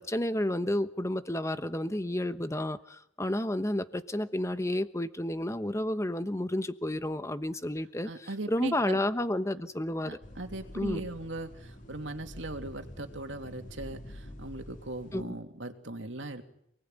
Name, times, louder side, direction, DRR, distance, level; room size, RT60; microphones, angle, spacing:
voice 1, 0.0-10.2 10.7-11.1 15.1-15.4, left 1 dB, 15° left, 11 dB, 1.1 m, -31 dB
voice 2, 8.0-9.0 10.0-16.4, right 2 dB, 80° right, 5 dB, 2.8 m, -39 dB
sound 1, 10.2-15.2, left 1 dB, 45° left, 3.6 m, -47 dB
28.0 x 19.5 x 9.2 m, 0.75 s
head